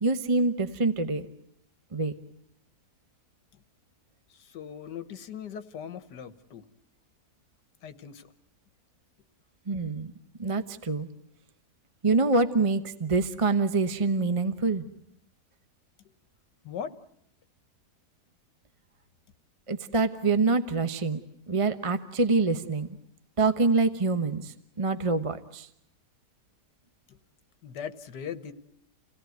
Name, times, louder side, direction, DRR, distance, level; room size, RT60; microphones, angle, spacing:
voice 1, 0.0-1.3 1.9-2.1 9.7-10.1 10.4-11.1 12.0-14.8 19.7-21.2 21.5-22.9 23.4-25.7, right 3 dB, 25° right, 9 dB, 0.8 m, -25 dB
voice 2, 4.5-6.6 7.8-8.3 16.7-16.9 27.1-27.2 27.6-28.5, left 8 dB, 80° left, 11 dB, 1.8 m, -39 dB
29.0 x 17.5 x 9.3 m, 0.75 s
omnidirectional pair, 1.8 m